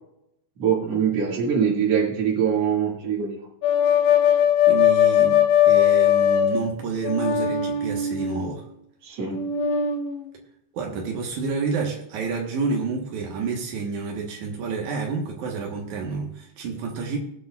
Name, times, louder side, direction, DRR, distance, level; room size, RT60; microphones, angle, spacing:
voice 1, 0.6-3.4 9.0-9.5, right 7 dB, 45° right, -1 dB, 2.3 m, -23 dB
sound 1, 3.6-6.8 7.0-8.6 9.3-10.3, left 9 dB, 90° left, 3.7 m, -20 dB
voice 2, 4.7-8.7 10.7-17.2, right 5 dB, 80° right, 0 dB, 1.7 m, -29 dB
22.0 x 8.2 x 2.3 m, 0.78 s
omnidirectional pair, 5.3 m